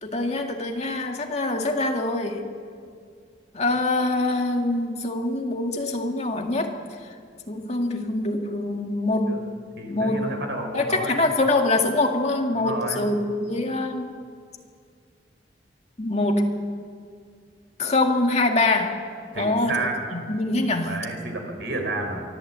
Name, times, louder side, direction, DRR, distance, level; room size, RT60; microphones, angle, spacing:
voice 1, 0.0-2.4 3.5-6.7 7.5-9.5 9.9-10.3 10.7-14.1 16.0-16.6 17.8-19.0 19.4-20.9, left 2 dB, 40° left, 3 dB, 2.1 m, -24 dB
voice 2, 9.8-11.2 12.5-13.0 19.3-20.0 20.7-22.2, right 2 dB, 85° right, 4 dB, 4.1 m, -31 dB
24.0 x 15.0 x 8.2 m, 2.2 s
head